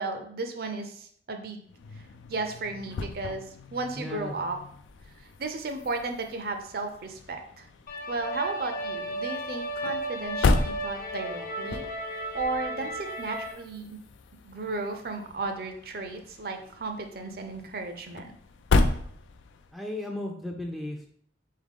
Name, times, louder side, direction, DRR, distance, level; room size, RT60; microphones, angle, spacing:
voice 1, 0.0-1.7 1.9-4.6 5.2-7.7 8.1-11.9 12.3-14.0 14.4-18.3, right 3 dB, 55° right, 6 dB, 0.5 m, -34 dB
sound 1, 1.7-19.8, left 3 dB, 85° left, 0.4 m, -33 dB
voice 2, 3.9-4.3 19.7-21.1, left 1 dB, ahead, 1 dB, 0.4 m, -35 dB
sound 2, 7.9-13.5, right 1 dB, 50° left, 0.8 m, -34 dB
3.9 x 3.7 x 3.6 m, 0.62 s
head